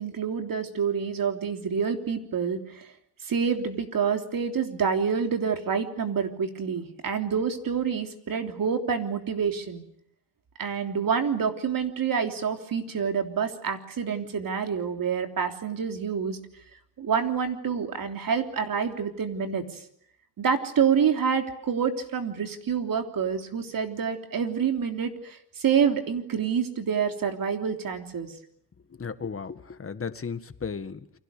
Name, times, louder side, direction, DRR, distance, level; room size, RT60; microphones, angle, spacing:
voice 1, 0.0-2.9 3.2-9.8 10.6-16.4 17.0-19.8 20.4-28.3, right 6 dB, 55° right, 5 dB, 3.4 m, -27 dB
voice 2, 29.0-31.0, left 5 dB, 35° left, 10 dB, 1.8 m, -35 dB
29.5 x 24.0 x 6.8 m, 0.74 s
cardioid pair, 120°, 40 cm